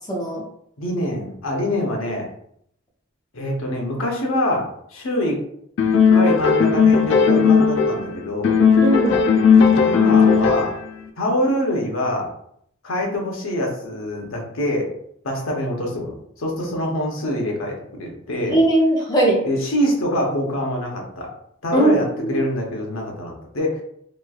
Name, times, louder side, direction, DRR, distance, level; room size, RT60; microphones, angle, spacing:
voice 1, 0.1-0.4 8.8-9.2 18.5-19.4 21.7-22.0 22.3-22.4, right 1 dB, 20° left, -3 dB, 0.7 m, -18 dB
voice 2, 0.8-2.3 3.3-5.4 6.1-8.6 9.8-10.8 11.2-12.3 12.8-14.9 15.2-18.6 19.4-21.3 21.6-23.8, equal, 80° left, 0 dB, 0.8 m, -25 dB
sound 1, 5.8-8.1 8.4-10.9, left 6 dB, 60° left, 0.3 m, -16 dB
3.0 x 2.3 x 2.3 m, 0.69 s
head